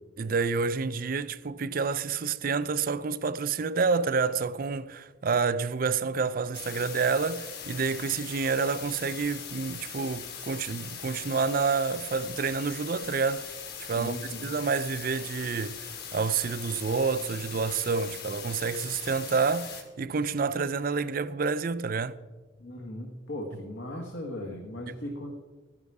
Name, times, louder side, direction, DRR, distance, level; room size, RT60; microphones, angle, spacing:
voice 1, 0.2-13.5 13.8-14.2 14.4-22.2, right 5 dB, 45° right, 0.4 m, -28 dB
sound 1, 6.5-19.8, left 7 dB, 55° left, 1.8 m, -41 dB
voice 2, 13.8-14.4 22.6-25.3, left 1 dB, 75° left, 1.6 m, -38 dB
13.5 x 10.5 x 4.8 m
head